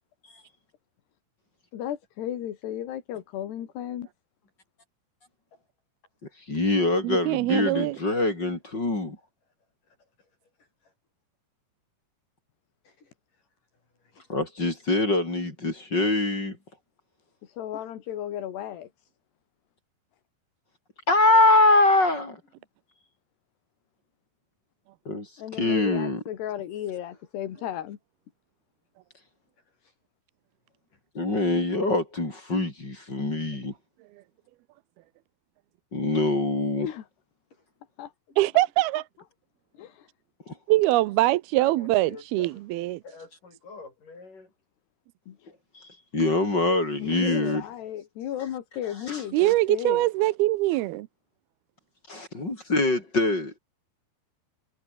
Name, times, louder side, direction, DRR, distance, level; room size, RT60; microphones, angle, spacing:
voice 1, 1.7-4.1 17.4-19.1 25.4-28.0 36.8-37.1 38.0-38.1 39.7-40.1 45.3-45.5 47.0-50.1, left 11 dB, 80° left, 4.3 m, -35 dB
voice 2, 6.5-9.2 14.3-16.6 21.1-22.4 25.1-25.3 25.6-26.2 31.1-33.7 35.9-36.9 40.5-40.6 45.8-47.6 49.1-49.2 52.1-53.5, left 2 dB, 25° left, 5.7 m, -24 dB
voice 3, 7.0-8.0 38.4-39.0 40.7-43.0 49.3-51.1, right 17 dB, 80° right, 2.6 m, -23 dB
voice 4, 41.6-42.6 43.0-44.5, left 3 dB, 50° left, 9.1 m, -47 dB
omnidirectional pair, 4.7 m